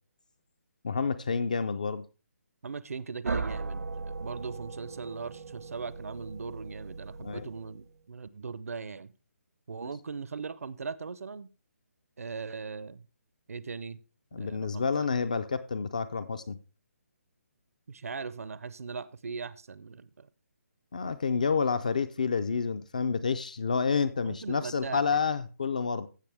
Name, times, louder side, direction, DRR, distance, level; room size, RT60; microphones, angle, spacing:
voice 1, 0.8-2.0 7.2-7.5 14.3-16.6 20.9-26.1, left 5 dB, 30° left, 0.4 m, -29 dB
voice 2, 2.6-9.1 9.7-11.5 12.2-13.1 13.5-14.0 14.4-15.1 17.9-20.3 24.2-25.2, right 5 dB, 65° right, 0.6 m, -39 dB
sound 1, 3.2-7.9, right 4 dB, 85° right, 1.1 m, -38 dB
15.5 x 6.0 x 3.4 m
hypercardioid pair, 175°, 8 cm